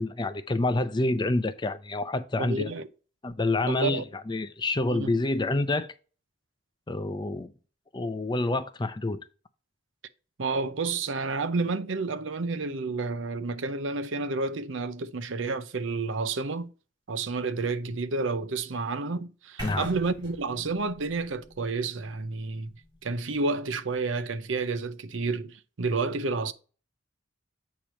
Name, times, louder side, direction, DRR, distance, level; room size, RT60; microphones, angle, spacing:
voice 1, 0.0-2.7 3.2-5.9 6.9-7.5 7.9-9.2 19.6-19.9, left 2 dB, 25° left, 0.5 m, -28 dB
voice 2, 2.4-2.9 3.7-4.0 4.9-5.2 10.4-16.7 17.1-22.7 23.0-26.5, right 3 dB, 75° right, 0.7 m, -30 dB
sound 1, 19.6-23.6, left 1 dB, 20° right, 2.2 m, -42 dB
8.5 x 3.0 x 6.2 m
head